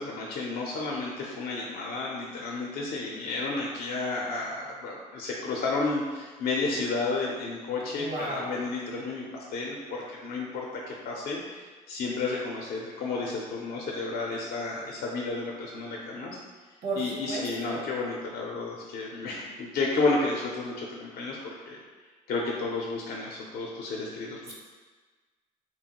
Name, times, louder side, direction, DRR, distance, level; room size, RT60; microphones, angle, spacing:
voice 1, 0.0-11.6 11.9-16.4 17.0-21.8 22.3-24.5, left 3 dB, 60° left, -2 dB, 0.5 m, -32 dB
voice 2, 8.0-8.6 16.8-17.8 24.5-24.6, right 2 dB, 70° right, -3 dB, 0.8 m, -34 dB
2.7 x 2.2 x 2.8 m, 1.4 s
supercardioid pair, 60°, 17 cm